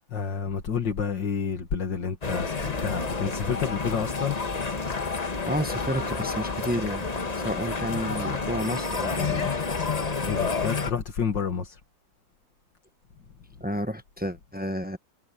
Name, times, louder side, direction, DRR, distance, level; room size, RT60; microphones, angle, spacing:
voice 1, 0.1-4.4 10.2-11.8, left 6 dB, 75° left, 2.5 m, -29 dB
sound 1, 2.2-10.9, left 4 dB, 25° left, 1.1 m, -29 dB
voice 2, 5.5-7.1 7.4-9.6 13.6-15.0, equal, 15° right, 0.4 m, -31 dB
omnidirectional pair, 2.0 m